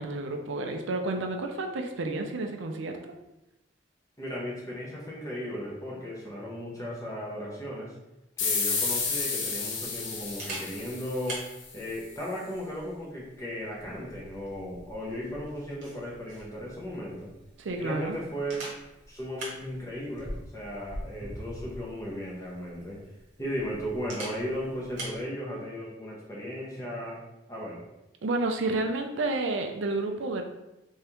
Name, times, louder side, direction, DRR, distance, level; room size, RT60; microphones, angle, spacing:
voice 1, 0.0-3.0 17.6-18.2 28.2-30.4, right 2 dB, 80° right, 4 dB, 0.5 m, -30 dB
voice 2, 4.2-7.9 8.4-11.4 11.7-17.3 17.8-18.7 19.1-23.0 23.4-27.2 27.5-27.8, equal, 15° left, -5 dB, 0.9 m, -36 dB
sound 1, 8.4-11.7, left 4 dB, 80° left, 0.8 m, -31 dB
Camera, 8.5-25.2, right 1 dB, 40° right, 1.1 m, -45 dB
3.5 x 3.4 x 2.9 m, 0.94 s
head